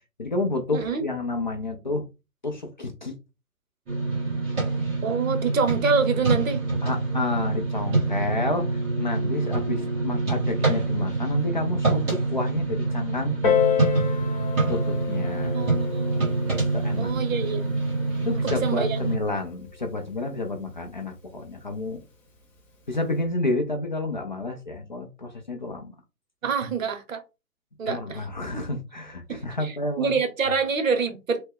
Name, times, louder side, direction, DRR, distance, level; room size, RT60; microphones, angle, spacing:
voice 1, 0.2-2.1 2.4-3.1 6.8-13.4 14.7-15.6 16.7-17.1 18.2-22.0 22.9-25.9 27.9-30.2, left 2 dB, 35° left, 0.4 m, -30 dB
voice 2, 0.7-1.0 5.0-6.6 15.4-16.3 17.0-17.8 18.4-19.1 26.4-27.2 27.8-28.2 29.3-31.4, right 5 dB, 60° right, 1.0 m, -26 dB
sound 1, 3.9-19.2, right 3 dB, 15° right, 1.0 m, -26 dB
Piano, 13.4-18.6 19.5-19.6, left 9 dB, 15° left, 1.0 m, -29 dB
3.2 x 2.1 x 3.4 m
figure-of-eight pair, 140°, 44 cm